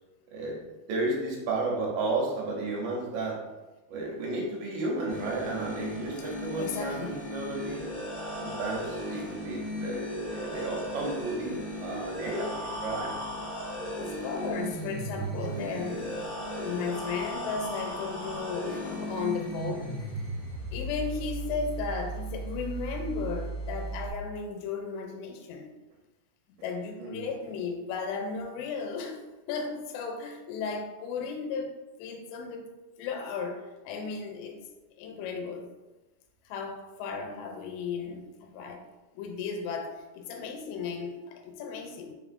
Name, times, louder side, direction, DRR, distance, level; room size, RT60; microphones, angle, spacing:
voice 1, 0.9-3.4 3.9-7.9 8.4-13.2 27.0-27.3, right 2 dB, 75° right, -2 dB, 2.4 m, -33 dB
sound 1, 5.1-24.1, equal, 50° left, 1.2 m, -36 dB
voice 2, 6.6-7.3 9.1-9.3 14.0-16.2 16.6-20.1 20.7-25.7 26.6-29.2 29.5-31.7 32.0-32.7 33.0-34.6 35.0-35.7 36.5-38.8 39.1-42.1, left 5 dB, 80° left, 3 dB, 2.4 m, -35 dB
5.4 x 3.5 x 2.5 m, 1.1 s
omnidirectional pair, 4.4 m